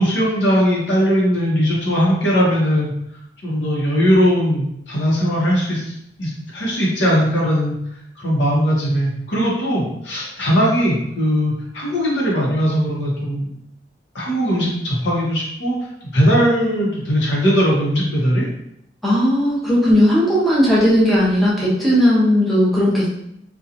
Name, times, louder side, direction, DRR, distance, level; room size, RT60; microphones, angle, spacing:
voice 1, 0.0-2.9 3.4-5.9 6.2-7.7 8.2-13.5 14.1-15.7 16.1-18.4, equal, 80° left, -4 dB, 0.9 m, -19 dB
voice 2, 19.0-23.1, equal, ahead, -8 dB, 0.7 m, -16 dB
2.8 x 2.3 x 2.5 m, 0.78 s
head